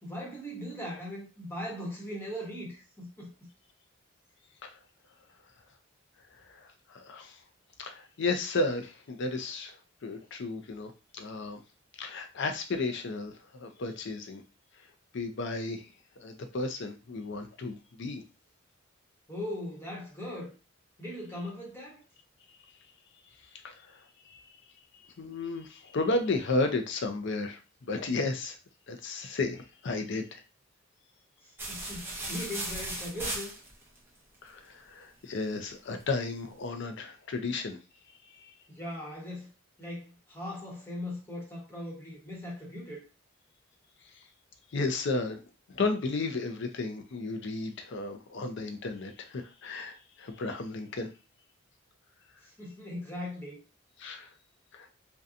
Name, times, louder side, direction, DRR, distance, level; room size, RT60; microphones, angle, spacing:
voice 1, 0.0-3.3 19.3-20.5 21.0-22.0 31.4-33.5 38.7-39.5 39.8-43.0 52.4-53.6, left 1 dB, 10° left, 1.0 m, -39 dB
voice 2, 6.3-7.4 7.8-11.6 12.0-14.4 15.1-15.9 16.2-18.2 23.6-24.6 25.2-28.6 28.9-30.4 34.4-37.8 38.3-38.5 44.1-44.2 44.7-45.4 45.7-51.1 54.0-54.3 54.7-54.9, left 3 dB, 60° left, 0.5 m, -33 dB
sound 1, 31.6-34.0, right 1 dB, 10° right, 0.6 m, -36 dB
2.7 x 2.2 x 2.5 m
head